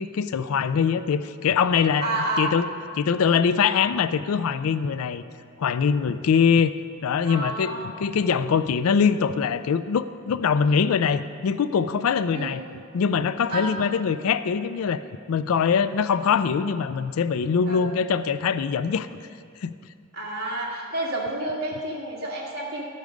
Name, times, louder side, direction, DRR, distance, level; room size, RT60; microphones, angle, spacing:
voice 1, 0.0-2.7 2.9-5.2 5.6-12.6 12.9-15.0 15.3-19.1 19.6-19.7, left 6 dB, 75° left, 13 dB, 0.4 m, -23 dB
voice 2, 2.0-2.5 7.2-8.0 12.3-12.5 13.5-13.7 17.7-17.8 20.1-22.9, right 2 dB, 50° right, -5 dB, 1.9 m, -29 dB
12.5 x 8.3 x 5.2 m, 2.3 s
head